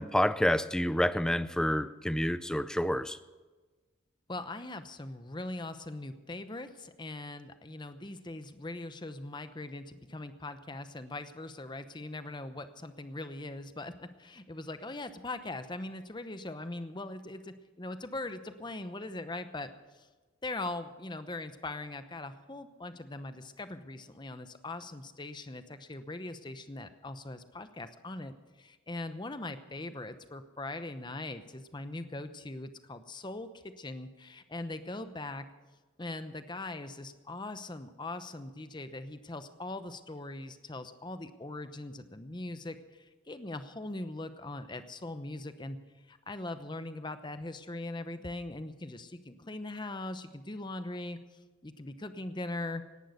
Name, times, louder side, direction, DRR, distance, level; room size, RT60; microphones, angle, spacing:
voice 1, 0.0-3.2, equal, 5° left, 14 dB, 0.4 m, -28 dB
voice 2, 4.3-19.7 19.9-20.1 20.4-33.5 33.8-35.5 36.0-45.8 46.1-51.2 51.6-52.8, left 2 dB, 20° left, 10 dB, 0.9 m, -41 dB
18.0 x 11.0 x 6.6 m, 1.3 s
head